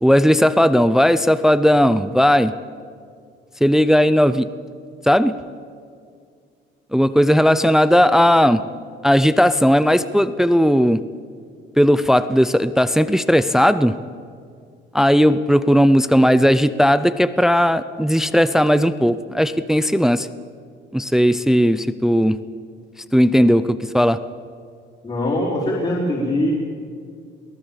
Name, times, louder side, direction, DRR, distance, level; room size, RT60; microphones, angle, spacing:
voice 1, 0.0-2.5 3.6-4.5 5.0-5.3 6.9-8.6 9.0-11.0 11.8-13.9 14.9-20.3 20.9-22.4 23.1-24.2, equal, ahead, 13 dB, 0.5 m, -16 dB
voice 2, 25.0-26.5, left 1 dB, 30° left, -5 dB, 4.6 m, -22 dB
23.0 x 17.5 x 7.4 m, 2.2 s
cardioid pair, 160°, 20 cm